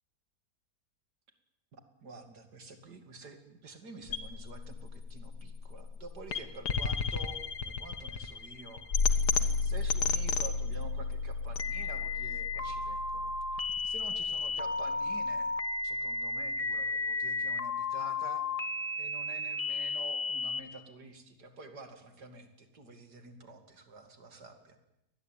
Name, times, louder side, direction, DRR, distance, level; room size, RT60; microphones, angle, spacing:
voice 1, 1.7-9.0 9.6-13.3 13.8-15.5 15.8-18.5 19.0-24.8, right 3 dB, 85° right, 7 dB, 3.1 m, -49 dB
sound 1, 4.1-16.1, left 5 dB, 80° left, 2.0 m, -33 dB
sound 2, 11.6-20.6, left 3 dB, 25° left, 1.4 m, -33 dB
24.0 x 19.0 x 9.2 m, 0.88 s
omnidirectional pair, 1.7 m